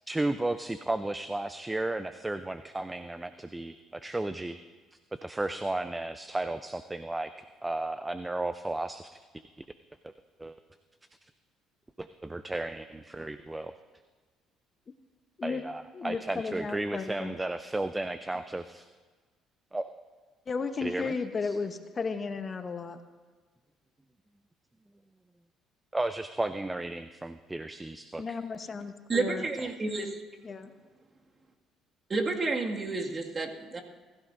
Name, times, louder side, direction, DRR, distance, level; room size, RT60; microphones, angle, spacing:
voice 1, 0.1-4.6 5.1-7.3 7.6-9.2 9.6-9.7 10.0-10.1 10.4-10.6 12.0-13.7 15.4-18.9 19.7-19.9 20.8-21.1 21.4-21.6 25.9-28.4, right 2 dB, 15° right, 10 dB, 0.5 m, -34 dB
voice 2, 15.9-17.3 20.5-23.0 28.2-29.4 30.4-30.7, left 4 dB, 35° left, 8 dB, 1.0 m, -34 dB
voice 3, 29.1-30.2 32.1-33.8, right 3 dB, 35° right, 1 dB, 2.0 m, -30 dB
21.5 x 15.0 x 2.6 m, 1.4 s
supercardioid pair, 75°, 0 cm